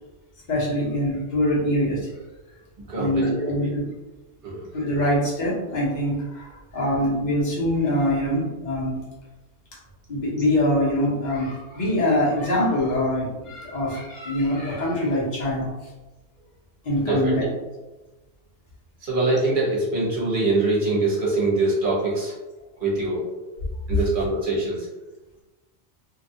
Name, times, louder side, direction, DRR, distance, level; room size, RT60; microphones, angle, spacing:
voice 1, 0.5-2.1 3.0-3.8 4.7-9.0 10.1-15.9 16.8-17.4 23.7-23.8, left 1 dB, 45° left, -5 dB, 1.0 m, -24 dB
voice 2, 2.9-3.7 4.4-4.7 17.0-17.5 19.0-22.3 22.8-23.2 23.9-24.9, right 2 dB, 50° right, -6 dB, 1.2 m, -23 dB
2.7 x 2.5 x 2.7 m, 1.1 s
omnidirectional pair, 1.2 m